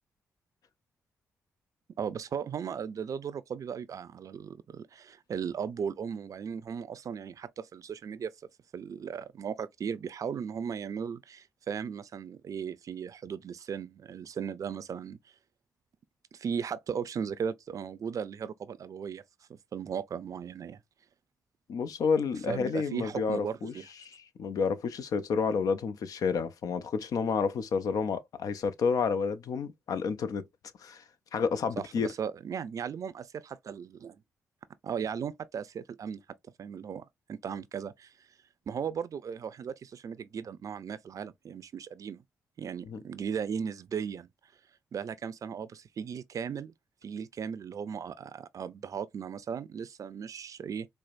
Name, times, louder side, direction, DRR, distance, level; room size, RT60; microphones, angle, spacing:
voice 1, 2.0-8.3 8.7-15.2 16.3-19.2 19.5-20.8 22.5-23.9 31.8-34.2 34.8-36.2 36.6-38.1 38.7-42.2 42.6-44.3 44.9-46.7 47.0-50.9, right 7 dB, 60° right, 0.4 m, -37 dB
voice 2, 21.7-23.7 24.0-24.1 24.4-30.5 30.8-31.0 31.3-32.1 42.8-43.0, left 5 dB, 65° left, 0.5 m, -30 dB
4.5 x 2.1 x 2.5 m
hypercardioid pair, 40°, 7 cm